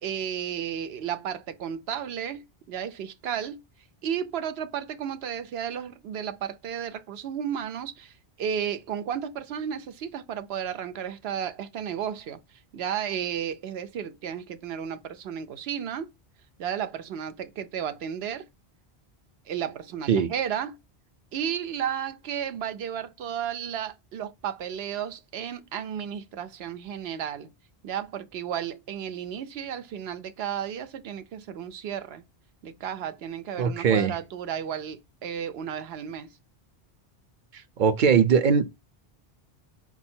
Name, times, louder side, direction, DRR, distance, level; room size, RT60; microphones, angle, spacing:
voice 1, 0.0-2.4 2.7-3.6 4.0-12.4 12.7-16.1 16.6-18.5 19.5-20.8 21.3-27.5 27.8-32.2 32.6-36.3, right 8 dB, 90° right, 0.9 m, -33 dB
voice 2, 33.6-34.1 37.8-38.8, right 6 dB, 55° right, 0.7 m, -21 dB
4.6 x 2.2 x 4.3 m
omnidirectional pair, 1.0 m